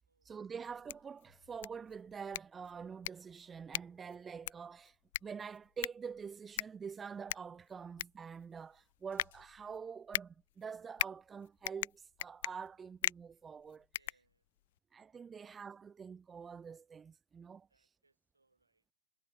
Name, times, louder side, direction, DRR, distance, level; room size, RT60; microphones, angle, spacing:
voice 1, 0.2-5.0 5.2-13.9 14.9-17.7, right 6 dB, 15° right, 0.6 m, -46 dB
sound 1, 0.7-14.8, left 15 dB, 50° left, 0.3 m, -42 dB
voice 2, 13.9-14.4 15.3-15.5 17.7-18.9, right 3 dB, 80° right, 7.5 m, -76 dB
figure-of-eight pair, 105°, 0 cm